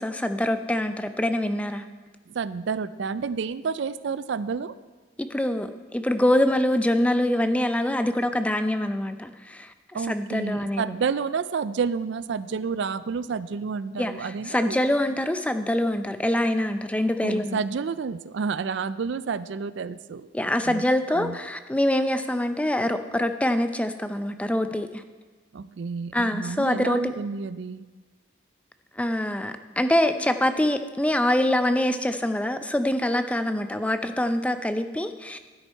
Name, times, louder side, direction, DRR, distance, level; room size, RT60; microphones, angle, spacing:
voice 1, 0.0-1.8 5.2-9.7 10.1-10.8 14.0-17.6 20.3-25.0 26.1-27.1 29.0-35.4, left 1 dB, 5° left, 9 dB, 0.4 m, -25 dB
voice 2, 2.3-4.8 9.9-14.8 17.2-20.8 21.1-21.4 25.5-27.8, right 5 dB, 60° right, 16 dB, 0.4 m, -30 dB
12.5 x 9.9 x 4.6 m, 1.3 s
head